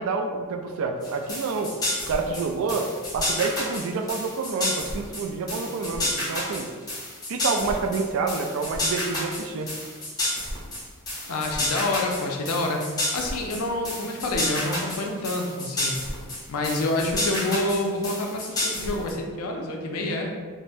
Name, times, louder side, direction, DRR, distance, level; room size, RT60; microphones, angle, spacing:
voice 1, 0.0-1.7 2.1-6.7 7.3-9.7, right 4 dB, 70° right, 5 dB, 0.3 m, -28 dB
sound 1, 1.0-19.1, left 1 dB, 20° left, 0.7 m, -30 dB
voice 2, 11.3-16.0 16.5-20.3, left 2 dB, 80° left, 1 dB, 0.4 m, -28 dB
3.3 x 2.1 x 2.5 m, 1.5 s
head